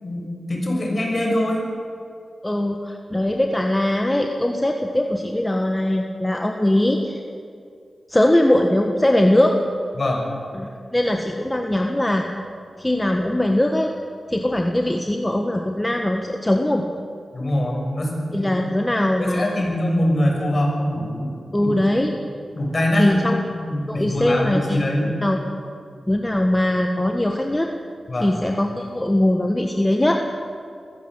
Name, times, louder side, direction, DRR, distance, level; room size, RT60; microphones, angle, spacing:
voice 1, 0.0-1.7 10.0-10.3 17.3-18.6 19.2-21.7 22.5-23.2 23.5-25.2 28.1-28.4, left 1 dB, 45° left, 0 dB, 6.8 m, -23 dB
voice 2, 2.4-7.2 8.1-9.6 10.5-12.2 12.8-13.9 14.3-16.9 18.3-19.6 21.5-22.1 23.0-23.4 23.9-25.4 26.1-27.7 28.2-30.2, left 1 dB, 15° left, 3 dB, 1.6 m, -21 dB
22.5 x 16.0 x 8.2 m, 2.3 s
cardioid pair, 65°, 0 cm